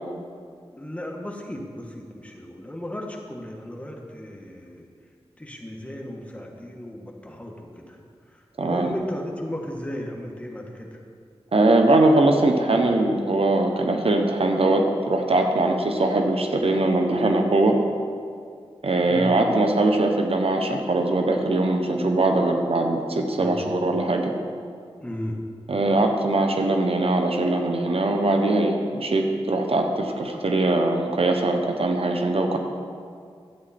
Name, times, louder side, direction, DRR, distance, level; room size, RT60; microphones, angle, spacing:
voice 1, 0.7-4.9 5.4-8.0 8.6-10.9 19.1-19.3 23.4-23.7 25.0-25.4, left 1 dB, 10° left, 0 dB, 1.5 m, -35 dB
voice 2, 8.6-8.9 11.5-17.8 18.8-24.3 25.7-32.6, right 2 dB, 65° right, 3 dB, 1.0 m, -21 dB
12.0 x 8.5 x 4.3 m, 2.2 s
wide cardioid pair, 60°, 11 cm